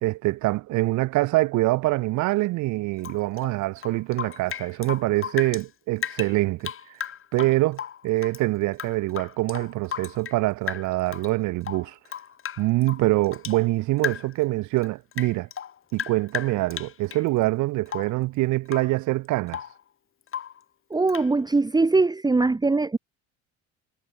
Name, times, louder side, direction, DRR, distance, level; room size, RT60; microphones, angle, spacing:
voice 1, 0.0-6.7 7.3-11.9 12.6-15.5 15.9-19.6, right 19 dB, 80° right, 2.3 m, -25 dB
Rain / Drip, 3.0-5.7 6.0-8.4 8.7-10.4 10.7-11.3 11.6-13.6 14.0-14.4 14.8-17.3 17.9-18.2 18.6-19.0 19.2-19.8 20.3-20.6 21.1-21.3, left 9 dB, 45° left, 2.5 m, -35 dB
voice 2, 20.9-23.0, right 3 dB, 15° right, 1.2 m, -21 dB
cardioid pair, 95°, 29 cm